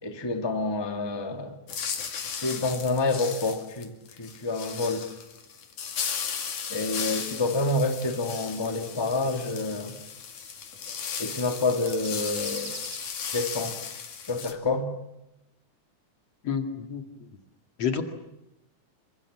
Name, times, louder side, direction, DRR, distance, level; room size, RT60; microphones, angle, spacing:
voice 1, 0.0-1.5 2.4-5.1 6.7-10.0 11.2-12.7 13.3-13.9 14.3-14.9, left 2 dB, 10° left, 5 dB, 1.6 m, -28 dB
sound 1, 1.7-14.5, left 7 dB, 75° left, 3.8 m, -36 dB
sound 2, 7.0-10.1 10.9-13.2, right 3 dB, 50° right, 6.1 m, -46 dB
voice 2, 16.4-17.0 17.8-18.0, left 7 dB, 55° left, 6 dB, 3.1 m, -28 dB
27.5 x 25.5 x 7.4 m, 0.91 s
omnidirectional pair, 3.5 m